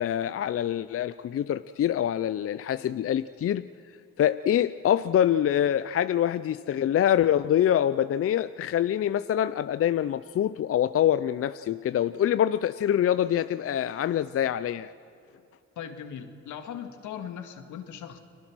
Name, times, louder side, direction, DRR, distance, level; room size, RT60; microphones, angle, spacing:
voice 1, 0.0-3.7 4.2-14.9, left 10 dB, 50° left, 14 dB, 0.5 m, -25 dB
voice 2, 15.8-18.2, left 8 dB, 80° left, 7 dB, 2.0 m, -39 dB
29.5 x 21.0 x 6.2 m, 2.6 s
cardioid pair, 90°, 30 cm